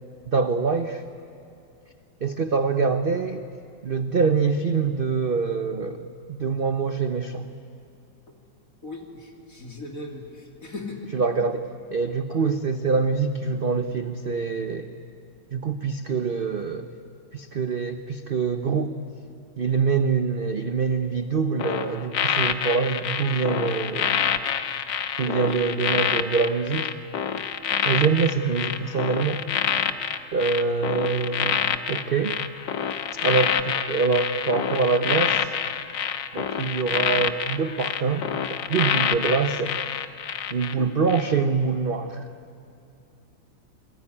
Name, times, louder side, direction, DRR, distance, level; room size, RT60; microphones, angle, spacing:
voice 1, 0.3-1.0 2.2-3.5 3.8-7.5 11.1-14.9 15.5-16.9 17.3-18.9 19.6-24.3 25.2-26.9 27.8-29.8 30.3-32.4 33.2-35.5 36.3-39.8 40.5-42.3, right 5 dB, 50° right, 8 dB, 0.7 m, -25 dB
voice 2, 8.8-11.1 25.2-25.6 36.4-36.5, left 2 dB, 45° left, 1 dB, 3.3 m, -38 dB
sound 1, 21.6-40.7 41.1-41.4, left 9 dB, 75° left, 1.7 m, -27 dB
27.5 x 22.0 x 9.9 m, 2.5 s
omnidirectional pair, 2.0 m